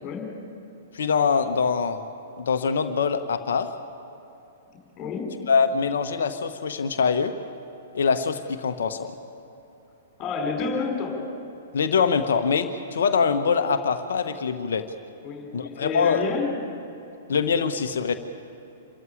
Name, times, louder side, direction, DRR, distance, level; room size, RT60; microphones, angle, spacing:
voice 1, 0.0-0.3 5.0-5.3 10.2-11.2 15.2-16.5, left 4 dB, 25° left, 1 dB, 5.3 m, -29 dB
voice 2, 0.9-2.0 2.4-3.7 5.5-7.3 7.9-9.1 11.7-14.9 15.5-16.2 17.3-18.1, left 6 dB, 60° left, 8 dB, 1.0 m, -23 dB
26.5 x 14.0 x 9.1 m, 2.9 s
figure-of-eight pair, 110°, 0 cm